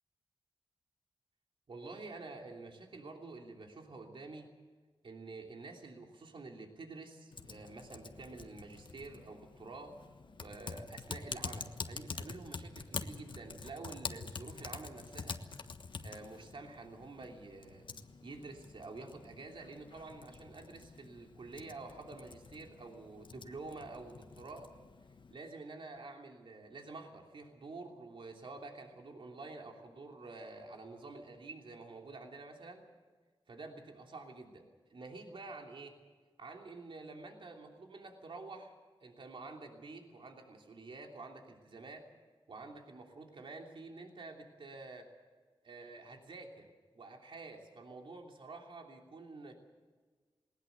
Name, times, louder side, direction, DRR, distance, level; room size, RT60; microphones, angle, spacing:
voice 1, 1.7-4.5 5.0-9.9 10.4-15.4 16.0-17.9 18.2-24.7 25.3-32.8 33.5-36.0 36.4-42.1 42.5-45.1 45.6-46.7 46.9-49.5, right 3 dB, 65° right, 2 dB, 3.1 m, -49 dB
Typing, 7.3-25.3, left 4 dB, 60° left, 1.4 m, -47 dB
20.0 x 19.0 x 8.1 m, 1.4 s
cardioid pair, 70°, 9 cm